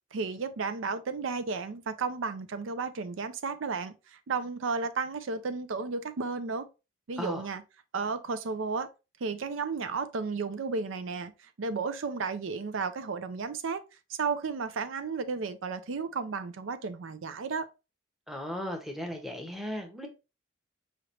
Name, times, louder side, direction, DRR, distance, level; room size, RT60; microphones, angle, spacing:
voice 1, 0.1-6.7 7.1-7.6 7.9-8.9 9.2-13.8 14.1-17.7, right 4 dB, 90° right, 0.5 m, -33 dB
voice 2, 18.3-20.1, equal, ahead, 0.8 m, -36 dB
5.0 x 3.2 x 2.9 m
head